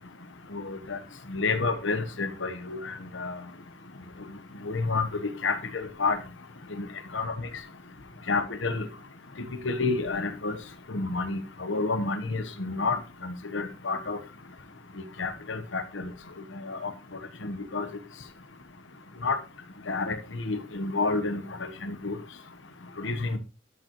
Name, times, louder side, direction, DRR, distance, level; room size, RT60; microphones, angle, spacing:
voice 1, 0.5-1.0 1.3-3.4 4.6-6.2 6.7-6.9 7.1-7.3 8.3-8.9 9.6-10.6 10.9-14.2 15.2-16.1 16.5-16.9 17.4-17.9 19.2-19.4 19.9-21.4 21.8-22.2 23.0-23.4, left 3 dB, 85° left, 10 dB, 1.2 m, -29 dB
12.5 x 6.5 x 3.1 m, 0.31 s
head